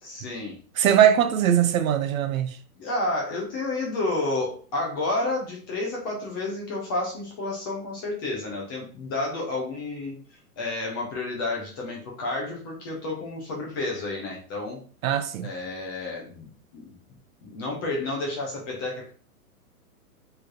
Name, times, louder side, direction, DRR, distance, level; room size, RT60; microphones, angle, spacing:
voice 1, 0.0-0.6 2.8-10.2 10.6-14.8 15.4-16.5 16.7-16.9 17.4-19.1, left 2 dB, 15° left, 0.4 m, -30 dB
voice 2, 0.8-2.6 15.0-15.5, right 10 dB, 60° right, 0.5 m, -21 dB
4.1 x 3.2 x 2.9 m
hypercardioid pair, 135°, 46 cm